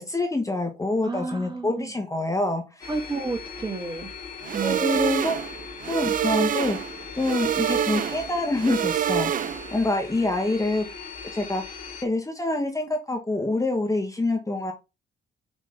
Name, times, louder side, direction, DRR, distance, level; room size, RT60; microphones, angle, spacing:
voice 1, 0.0-2.9 4.6-5.4 5.8-6.8 7.2-9.3 9.7-10.8 11.3-14.7, left 2 dB, 15° left, 1.2 m, -26 dB
voice 2, 1.0-1.9 2.9-4.1 4.5-4.8, right 3 dB, 20° right, 1.7 m, -31 dB
sound 1, 2.8-12.0, left 5 dB, 40° left, 1.8 m, -40 dB
sound 2, 4.4-9.8, right 9 dB, 45° right, 0.4 m, -27 dB
5.2 x 3.7 x 5.0 m
cardioid pair, 90°, 20 cm